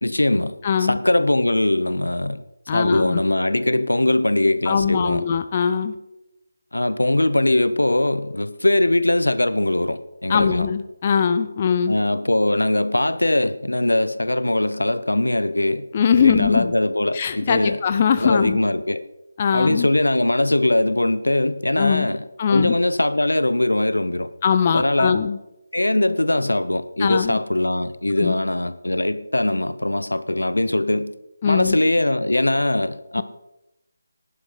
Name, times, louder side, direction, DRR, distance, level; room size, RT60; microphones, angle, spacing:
voice 1, 0.0-2.4 2.7-5.3 6.7-10.7 11.9-15.9 16.1-17.8 18.2-19.0 19.5-24.3 24.7-25.2 25.7-31.1 31.5-33.2, left 1 dB, 80° left, 1.0 m, -21 dB
voice 2, 0.6-1.0 2.7-3.2 4.7-5.9 10.3-12.0 15.9-16.7 17.1-18.6 19.4-19.9 21.8-22.1 22.4-22.8 24.4-25.4 27.0-27.4 28.2-28.3 31.4-31.8, left 7 dB, 30° left, 0.7 m, -21 dB
15.5 x 11.0 x 4.0 m
figure-of-eight pair, 155°, 0 cm